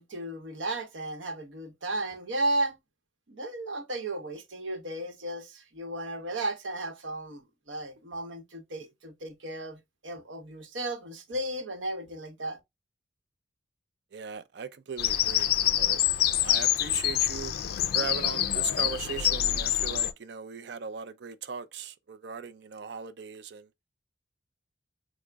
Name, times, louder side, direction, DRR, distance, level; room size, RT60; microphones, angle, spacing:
voice 1, 0.0-2.8 3.3-9.8 10.0-12.6, right 1 dB, 80° right, 0.9 m, -34 dB
voice 2, 14.1-15.5 15.8-17.5 17.9-23.7, right 5 dB, 60° right, 0.4 m, -39 dB
Bird vocalization bird call bird song, 15.0-20.1, left 11 dB, 50° left, 0.3 m, -26 dB
4.9 x 2.0 x 3.3 m
head